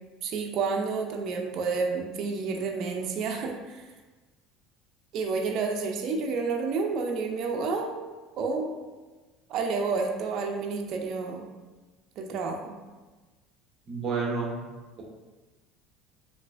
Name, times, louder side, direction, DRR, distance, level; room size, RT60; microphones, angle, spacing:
voice 1, 0.2-3.8 5.1-7.9 8.4-8.7 9.5-11.4 12.2-12.7, right 4 dB, 55° right, 2 dB, 0.4 m, -30 dB
voice 2, 13.9-14.6, right 4 dB, 35° right, -1 dB, 0.8 m, -29 dB
4.4 x 2.4 x 2.5 m, 1.2 s
supercardioid pair, 120°, 0 cm